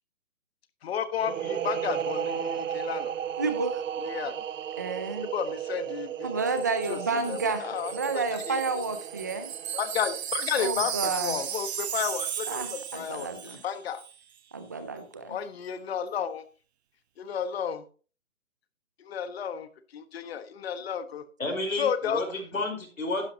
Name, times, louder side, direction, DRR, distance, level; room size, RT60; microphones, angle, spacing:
voice 1, 0.8-3.1 4.0-4.3 5.3-6.5 6.9-8.6 9.7-14.0 15.3-16.4 17.2-17.8 19.0-19.7 19.9-21.2 21.7-22.2, left 8 dB, 50° left, 10 dB, 1.4 m, -32 dB
sound 1, 1.2-10.7, right 9 dB, 70° right, 0.7 m, -35 dB
voice 2, 3.4-3.8 4.8-5.3 6.2-9.5 10.6-11.4 12.5-13.6 14.5-15.4, right 4 dB, 15° right, 10 dB, 0.4 m, -31 dB
Wind chime, 6.5-13.7 13.9-14.1, right 9 dB, 55° right, 1.1 m, -36 dB
voice 3, 21.4-23.3, left 2 dB, 90° left, 3 dB, 4.6 m, -31 dB
12.0 x 10.0 x 2.8 m, 0.37 s
hypercardioid pair, 140°, 40 cm